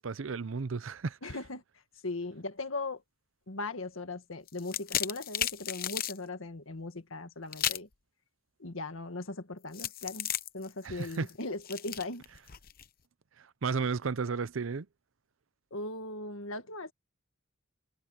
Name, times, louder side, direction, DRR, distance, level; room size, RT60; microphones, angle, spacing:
voice 1, 0.0-1.2 10.8-11.3 13.6-14.9, right 4 dB, 70° right, 0.6 m, -33 dB
voice 2, 1.2-1.6 2.0-3.0 3.5-7.9 8.6-12.2 15.7-16.9, left 2 dB, 80° left, 1.8 m, -38 dB
sound 1, 4.5-6.2 7.5-7.9 9.7-12.9, left 11 dB, 45° left, 0.8 m, -35 dB
head